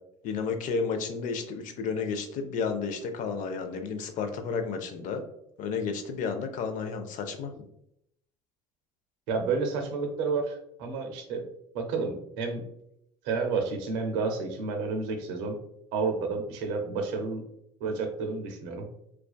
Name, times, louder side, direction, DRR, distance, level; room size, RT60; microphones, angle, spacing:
voice 1, 0.2-5.2 5.6-7.7, left 5 dB, 55° left, 7 dB, 0.5 m, -32 dB
voice 2, 9.3-11.5 11.7-12.6 13.2-15.6 15.9-17.4 17.8-18.9, right 4 dB, 75° right, 4 dB, 0.6 m, -30 dB
2.4 x 2.3 x 2.2 m, 0.76 s
hypercardioid pair, 75°, 16 cm